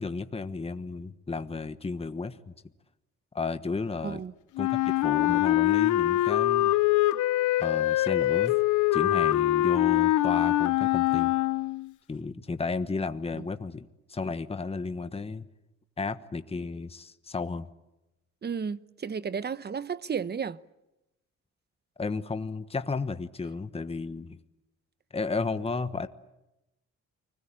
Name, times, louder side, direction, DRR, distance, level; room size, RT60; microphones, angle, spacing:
voice 1, 0.0-2.5 3.3-4.2 4.6-6.7 7.6-8.6 8.9-11.3 12.1-15.4 16.0-17.7 22.0-24.4 25.1-26.1, left 4 dB, 20° left, 1.2 m, -33 dB
Wind instrument woodwind instrument, 4.6-11.9, left 15 dB, 85° left, 0.9 m, -24 dB
voice 2, 18.4-20.6, right 6 dB, 35° right, 0.9 m, -33 dB
30.0 x 21.0 x 8.9 m
cardioid pair, 90°, 30 cm